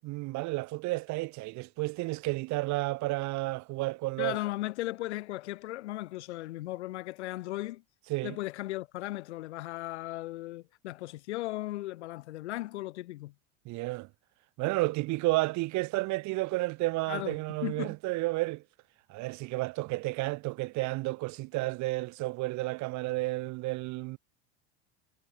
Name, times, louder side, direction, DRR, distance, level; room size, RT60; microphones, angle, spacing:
voice 1, 0.0-4.4 8.1-8.4 13.6-14.1 14.6-18.6 19.1-24.2, right 21 dB, 55° right, 4.7 m, -31 dB
voice 2, 4.2-7.8 8.2-13.3 17.1-17.4 17.6-17.9, left 17 dB, 80° left, 5.8 m, -36 dB
hypercardioid pair, 100°, 34 cm